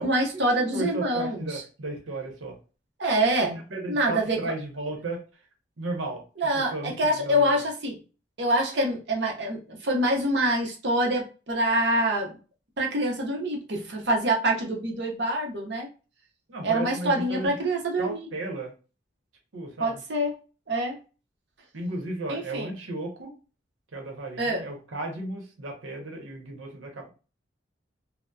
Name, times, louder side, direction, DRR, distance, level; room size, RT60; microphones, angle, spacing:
voice 1, 0.0-1.6 3.0-3.6 3.9-4.5 6.4-8.0 8.4-12.4 12.8-15.9 16.6-18.3 19.8-20.3 20.7-21.0 22.3-22.8 24.4-24.7, right 1 dB, 60° right, 0 dB, 0.7 m, -26 dB
voice 2, 0.5-2.6 3.7-5.2 5.8-6.2 6.5-7.6 16.5-17.5 18.0-18.7 19.5-20.0 21.7-23.3 23.9-27.1, right 2 dB, 90° right, 1 dB, 0.8 m, -34 dB
2.7 x 2.0 x 2.2 m, 0.34 s
head